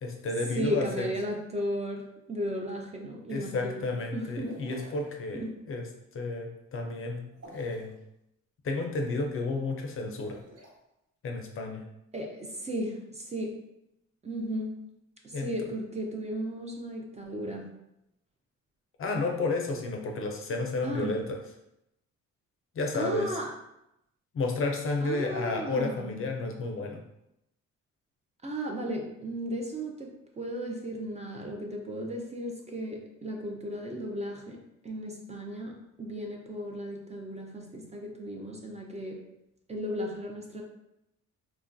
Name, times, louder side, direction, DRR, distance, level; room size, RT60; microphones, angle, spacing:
voice 1, 0.0-1.1 3.3-5.9 6.1-7.2 7.5-8.0 8.6-10.4 11.2-11.8 15.3-15.5 19.0-21.4 22.8-23.4 24.3-27.0, left 3 dB, 45° left, 2 dB, 0.5 m, -31 dB
voice 2, 0.5-3.9 4.1-4.6 5.3-5.5 12.1-13.5 14.2-14.8 15.2-17.7 20.8-21.2 22.9-23.5 25.0-26.2 28.4-34.6 34.8-39.2 39.7-40.6, equal, 20° right, 0 dB, 0.5 m, -35 dB
sound 1, 4.4-5.1 7.3-7.9 10.1-10.7, right 1 dB, 55° right, 1.1 m, -48 dB
3.0 x 2.2 x 2.5 m, 0.84 s
cardioid pair, 90°, 30 cm